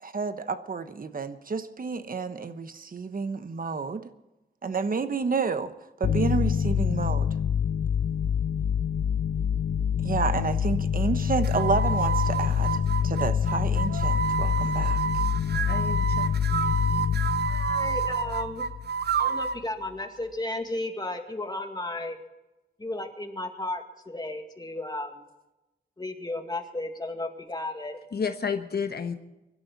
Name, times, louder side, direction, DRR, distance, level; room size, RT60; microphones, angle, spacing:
voice 1, 0.0-4.1 4.6-5.7 6.0-7.3 10.0-15.0, right 4 dB, 55° right, 11 dB, 1.1 m, -30 dB
sound 1, 6.0-19.2, left 8 dB, 90° left, 0.7 m, -26 dB
sound 2, 11.4-19.6, right 6 dB, 80° right, 0.6 m, -29 dB
voice 2, 15.6-16.3 28.1-29.2, left 6 dB, 70° left, 7 dB, 1.2 m, -31 dB
voice 3, 17.5-18.6 19.2-22.2 22.8-25.3 26.0-28.0, left 2 dB, 25° left, 5 dB, 2.1 m, -34 dB
23.0 x 12.0 x 4.2 m, 1.0 s
wide cardioid pair, 105°, 17 cm